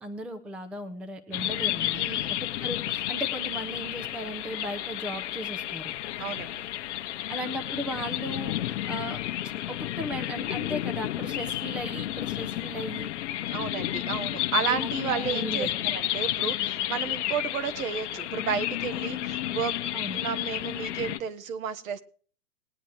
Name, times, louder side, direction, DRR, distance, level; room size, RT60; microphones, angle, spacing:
voice 1, 0.0-2.0 2.3-5.9 7.3-9.2 9.7-13.1 14.6-15.7 19.9-20.2, equal, ahead, 9 dB, 0.6 m, -36 dB
sound 1, 1.3-21.2, left 13 dB, 50° left, 1.0 m, -31 dB
voice 2, 1.9-2.3 6.2-6.7 13.5-19.8 20.1-22.0, right 7 dB, 60° right, 11 dB, 1.4 m, -32 dB
20.0 x 9.1 x 3.1 m, 0.44 s
hypercardioid pair, 115°, 46 cm